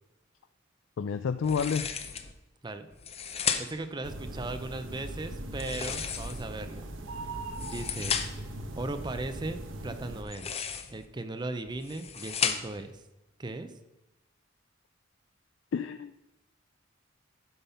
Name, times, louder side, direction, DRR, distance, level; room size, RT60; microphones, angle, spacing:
voice 1, 1.0-1.9 15.7-16.1, left 6 dB, 75° left, 11 dB, 0.4 m, -29 dB
sound 1, 1.4-2.3 2.9-3.9 5.5-6.6 7.4-8.5 10.2-11.1 11.7-12.9, left 7 dB, 30° left, 0.7 m, -34 dB
voice 2, 3.6-6.9 7.5-8.2 8.8-10.5 10.9-13.0 13.4-13.7, right 2 dB, 25° right, 9 dB, 0.6 m, -37 dB
sound 2, 4.0-10.2, right 1 dB, 85° right, 1.1 m, -40 dB
11.0 x 5.3 x 5.6 m, 0.95 s
head